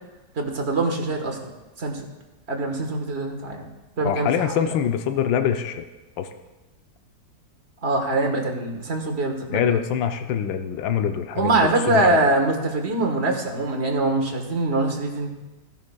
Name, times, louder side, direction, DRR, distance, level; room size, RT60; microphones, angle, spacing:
voice 1, 0.3-1.4 1.8-2.0 2.5-3.7 4.0-4.6 7.8-9.8 11.3-15.3, right 2 dB, 40° right, 2 dB, 1.5 m, -23 dB
voice 2, 4.0-5.8 6.2-6.3 9.5-12.2, left 8 dB, 90° left, 7 dB, 1.4 m, -24 dB
16.5 x 11.5 x 2.3 m, 1.1 s
omnidirectional pair, 2.0 m